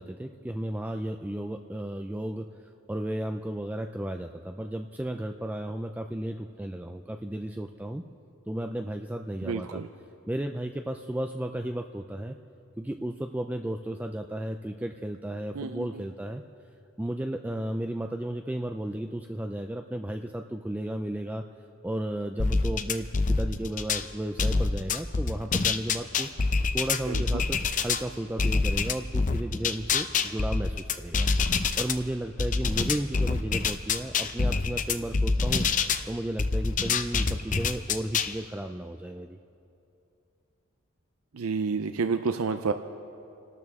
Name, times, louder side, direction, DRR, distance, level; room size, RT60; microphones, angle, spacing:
voice 1, 0.0-2.5 2.9-8.0 8.5-9.8 10.3-12.4 12.8-16.4 17.0-21.4 21.8-26.3 26.7-31.3 31.7-39.4, right 1 dB, 10° right, 5 dB, 0.4 m, -34 dB
voice 2, 9.4-9.9 15.6-15.9 27.1-27.2 41.3-42.7, right 4 dB, 85° right, 9 dB, 0.6 m, -29 dB
sound 1, 22.4-24.0 24.4-28.0 28.4-31.9 32.4-36.0 36.4-38.3, left 4 dB, 40° left, 0.6 m, -26 dB
28.5 x 12.5 x 3.6 m, 2.7 s
head